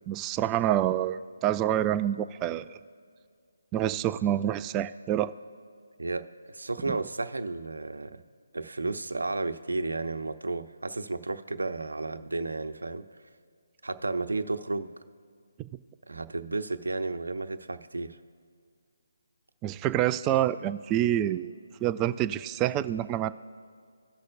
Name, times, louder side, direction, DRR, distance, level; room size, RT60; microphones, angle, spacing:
voice 1, 0.1-2.8 3.7-5.3 6.9-7.0 19.6-21.5 21.8-23.3, right 12 dB, 20° right, 13 dB, 0.4 m, -27 dB
voice 2, 6.0-8.2 8.5-13.0 13.8-14.9 16.1-18.2, right 3 dB, 85° right, 10 dB, 0.8 m, -33 dB
17.5 x 6.4 x 2.6 m, 2.1 s
figure-of-eight pair, 155°, 0 cm